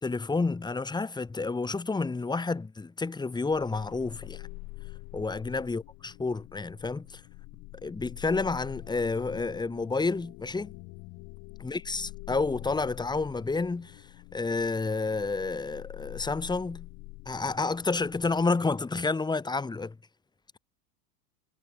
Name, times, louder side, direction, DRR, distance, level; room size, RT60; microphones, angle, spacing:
voice 1, 0.0-4.5 5.1-7.2 7.8-10.7 11.6-14.1 14.3-16.9 17.2-20.0, left 3 dB, 10° left, 1.3 m, -30 dB
sound 1, 3.5-18.4, left 24 dB, 50° left, 2.6 m, -46 dB
hypercardioid pair, 100°, 44 cm